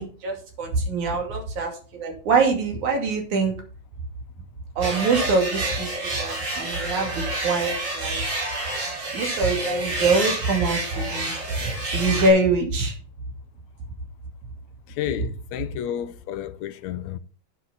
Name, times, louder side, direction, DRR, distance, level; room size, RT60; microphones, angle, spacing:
voice 1, 0.0-3.5 4.8-8.4 9.1-11.4 11.8-13.0, right 3 dB, 80° right, 4.0 m, -24 dB
sound 1, 4.8-12.3, right 2 dB, 60° right, 6.3 m, -29 dB
voice 2, 15.0-17.2, left 11 dB, 75° left, 2.0 m, -31 dB
10.0 x 9.4 x 4.1 m
omnidirectional pair, 3.3 m